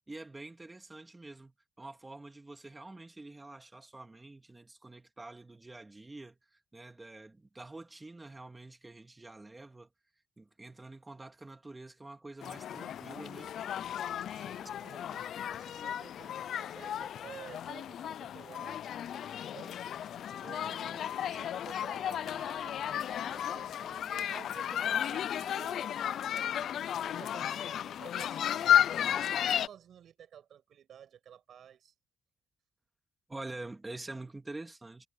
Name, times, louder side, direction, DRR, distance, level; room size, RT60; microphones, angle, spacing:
voice 1, 0.1-6.4 6.7-9.9 10.4-13.5 33.3-35.1, right 2 dB, 15° right, 2.3 m, -47 dB
sound 1, 12.4-29.7, left 10 dB, 70° left, 0.4 m, -33 dB
voice 2, 14.3-19.9 20.4-31.9, right 9 dB, 70° right, 6.2 m, -53 dB
cardioid pair, 120°, 0 cm